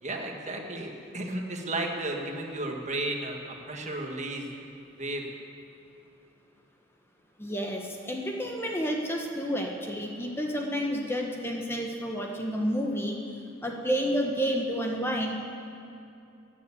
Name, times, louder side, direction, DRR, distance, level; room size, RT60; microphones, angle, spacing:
voice 1, 0.0-4.5 5.0-5.2, right 2 dB, 35° right, 2 dB, 1.5 m, -33 dB
voice 2, 7.4-13.2 13.6-15.3, equal, 10° left, 1 dB, 1.0 m, -30 dB
14.0 x 9.4 x 8.3 m, 2.7 s
head